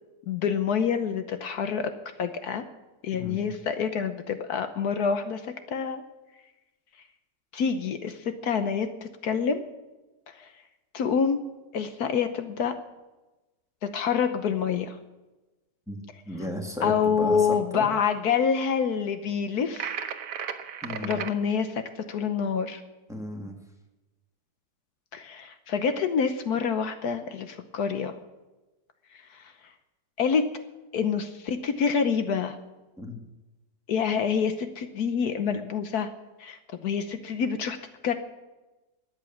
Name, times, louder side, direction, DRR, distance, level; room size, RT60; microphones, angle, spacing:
voice 1, 0.3-1.9 2.2-2.6 3.0-5.4 5.7-6.0 7.5-9.7 10.3-10.5 10.9-11.4 11.7-12.7 13.8-15.0 16.8-19.9 21.0-21.8 22.1-22.8 25.1-28.1 29.3-29.4 30.2-30.5 30.9-32.6 33.9-36.1 36.4-37.8 38.0-38.1, left 6 dB, 70° left, 9 dB, 1.4 m, -27 dB
voice 2, 3.1-3.5 15.9-16.0 16.3-17.9 20.8-21.2 23.1-23.6 33.0-33.2, left 1 dB, ahead, 1 dB, 1.9 m, -35 dB
sound 1, 19.8-21.3, right 8 dB, 70° right, 1.4 m, -34 dB
13.5 x 9.5 x 7.2 m, 1.1 s
omnidirectional pair, 1.7 m